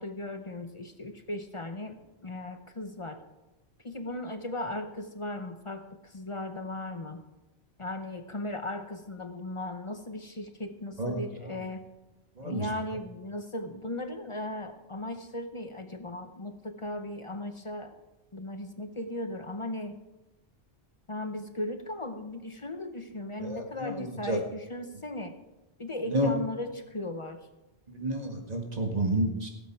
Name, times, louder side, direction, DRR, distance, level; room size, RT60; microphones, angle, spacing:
voice 1, 0.0-3.2 3.8-7.2 7.8-11.9 12.4-17.9 18.3-20.0 21.1-25.4 25.8-27.4, left 1 dB, 30° left, 8 dB, 0.8 m, -37 dB
voice 2, 12.4-12.7 23.4-24.4 26.1-26.3 27.9-29.5, right 1 dB, 40° right, 2 dB, 1.9 m, -30 dB
17.0 x 8.0 x 4.7 m, 1.0 s
omnidirectional pair, 1.1 m